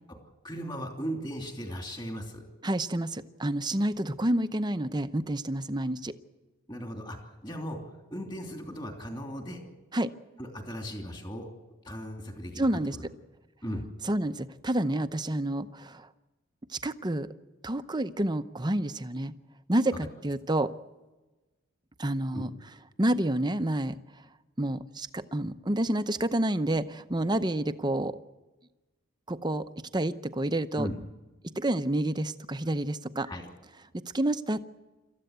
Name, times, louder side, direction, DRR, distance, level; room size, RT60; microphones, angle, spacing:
voice 1, 0.4-2.4 6.7-7.2 7.4-7.8 8.1-9.6 10.4-11.5 11.8-12.7 12.9-13.0 13.6-13.8 22.3-22.5 30.8-30.9 33.2-33.4, equal, 20° left, 2 dB, 3.0 m, -37 dB
voice 2, 2.6-6.2 9.9-10.1 12.6-13.0 14.0-16.1 16.7-17.3 17.6-19.3 19.7-20.7 22.0-22.5 23.0-24.0 24.6-28.2 29.3-29.6 29.9-30.9 31.6-33.3 33.9-34.6, right 1 dB, 20° right, 11 dB, 0.7 m, -29 dB
27.0 x 14.0 x 8.1 m, 1.2 s
head